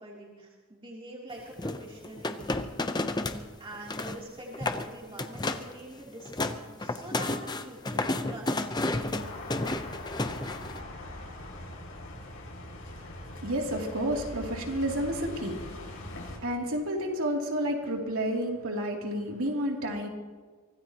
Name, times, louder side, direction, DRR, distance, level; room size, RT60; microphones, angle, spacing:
voice 1, 0.0-2.7 3.6-8.6 8.8-9.6, right 1 dB, 25° right, -4 dB, 3.1 m, -45 dB
sound 1, 1.6-3.4 3.7-4.2 4.5-4.9 5.2-5.7 6.1-10.8, left 2 dB, 20° left, 0.7 m, -31 dB
sound 2, 9.2-16.4, left 1 dB, 75° left, 5.3 m, -42 dB
voice 2, 13.4-15.6 16.4-20.1, equal, 80° right, 0 dB, 2.9 m, -30 dB
24.5 x 18.0 x 3.0 m, 1.5 s
head